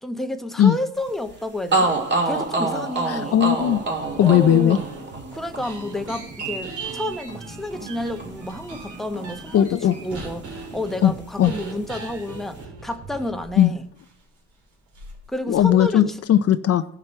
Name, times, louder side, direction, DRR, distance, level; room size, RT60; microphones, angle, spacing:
voice 1, 0.0-3.4 4.2-4.8 5.3-13.8 15.3-16.0, left 1 dB, ahead, 0.9 m, -30 dB
sound 1, 1.3-1.4 1.7-9.6 9.8-11.0, right 3 dB, 35° right, 1.9 m, -28 dB
voice 2, 3.1-3.8 4.2-4.8 9.5-10.0 11.0-11.1 11.4-11.5 13.6-13.7 15.5-16.9, left 10 dB, 55° left, 0.5 m, -17 dB
sound 2, 3.5-13.6 14.0-14.1 14.9-15.3 15.5-16.0, right 4 dB, 70° right, 3.2 m, -39 dB
15.0 x 5.9 x 4.4 m
cardioid pair, 90°, 30 cm